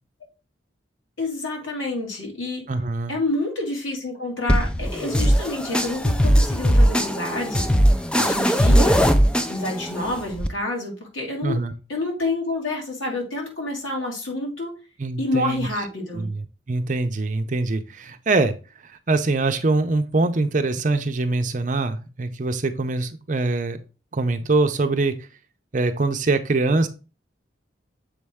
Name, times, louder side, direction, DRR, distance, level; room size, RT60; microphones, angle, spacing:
voice 1, 1.2-2.6 3.1-7.7 8.1-9.0 9.5-11.6 11.9-14.7 15.2-16.3, left 2 dB, 90° left, 0 dB, 2.2 m, -28 dB
voice 2, 2.7-3.2 11.4-11.7 15.0-15.7 16.1-18.5 18.9-23.8 24.1-25.2 25.7-26.9, right 3 dB, 40° right, 8 dB, 0.6 m, -23 dB
sound 1, 4.5-10.5, equal, 5° left, 0.3 m, -19 dB
7.2 x 4.3 x 3.5 m, 0.32 s
head